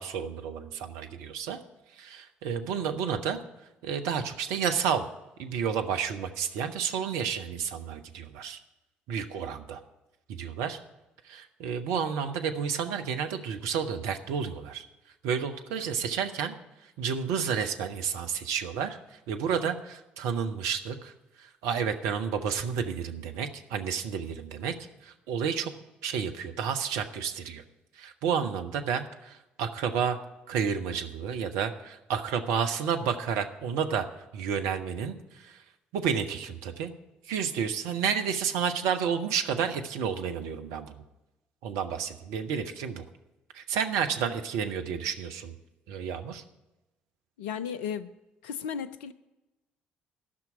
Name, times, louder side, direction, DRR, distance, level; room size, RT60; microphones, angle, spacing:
voice 1, 0.0-1.6 2.0-3.4 3.8-5.0 5.4-8.6 9.1-9.8 10.3-10.8 11.2-14.8 15.2-16.6 17.0-21.1 21.4-24.7 25.0-25.7 26.0-27.6 28.0-30.2 30.5-34.1 34.3-35.6 35.9-36.9 37.3-41.0 41.6-43.0 43.5-45.5 45.9-46.4, right 7 dB, 65° right, 7 dB, 0.9 m, -31 dB
voice 2, 47.4-48.1 48.4-49.1, left 7 dB, 70° left, 12 dB, 0.5 m, -34 dB
12.5 x 6.1 x 8.6 m, 1.0 s
figure-of-eight pair, 50°, 5 cm